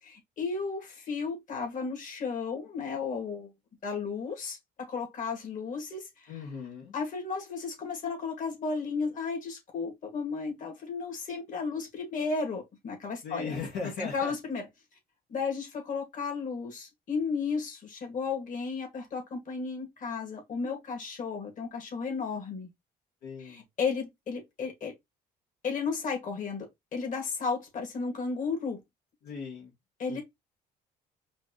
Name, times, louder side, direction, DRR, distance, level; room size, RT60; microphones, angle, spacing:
voice 1, 0.0-3.5 3.8-6.5 6.9-14.7 15.3-22.7 23.4-24.9 25.6-26.7 26.9-28.8 30.0-30.2, left 5 dB, 50° left, 2.3 m, -34 dB
voice 2, 6.3-6.9 13.2-14.3 23.2-23.6 29.2-29.7 30.1-30.2, left 4 dB, 80° left, 1.7 m, -38 dB
5.0 x 2.7 x 3.1 m
cardioid pair, 110°, 17 cm